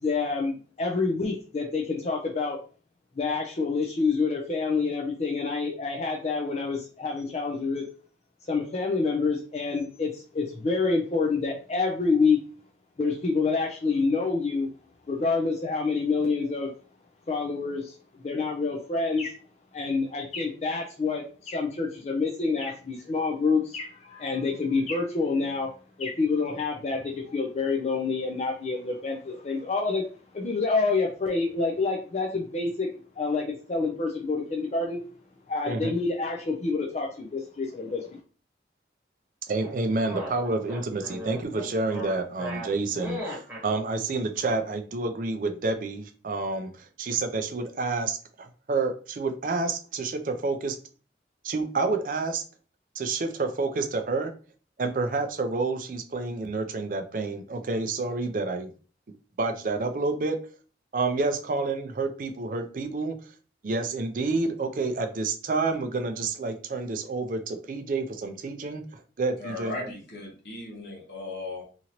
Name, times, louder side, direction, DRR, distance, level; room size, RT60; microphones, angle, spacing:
voice 1, 0.0-2.6 3.2-7.8 8.5-12.4 13.0-14.7 15.1-16.7 17.3-19.3 19.7-25.7 26.0-30.0 30.3-32.9 33.2-35.1 35.5-38.2, left 4 dB, 40° left, 0 dB, 0.4 m, -27 dB
voice 2, 39.5-50.8 51.4-52.4 53.0-54.3 54.8-58.7 59.4-60.4 60.9-63.2 63.6-69.7, right 3 dB, 50° right, 7 dB, 0.4 m, -29 dB
sound 1, 39.6-43.7, left 1 dB, 10° right, 1.0 m, -37 dB
voice 3, 69.4-71.6, left 2 dB, 70° left, -2 dB, 1.2 m, -37 dB
2.9 x 2.5 x 2.8 m, 0.39 s
head